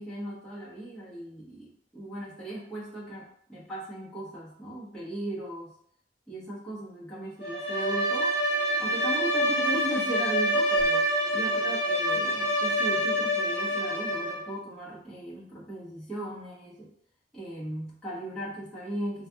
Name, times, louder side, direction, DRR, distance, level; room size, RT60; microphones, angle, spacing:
voice 1, 0.0-5.7 6.3-8.4 8.8-11.1 11.3-16.9 17.3-19.3, right 1 dB, 5° left, -10 dB, 0.9 m, -37 dB
Bowed string instrument, 7.4-14.5, equal, 70° left, 0.5 m, -26 dB
2.4 x 2.3 x 2.7 m, 0.67 s
head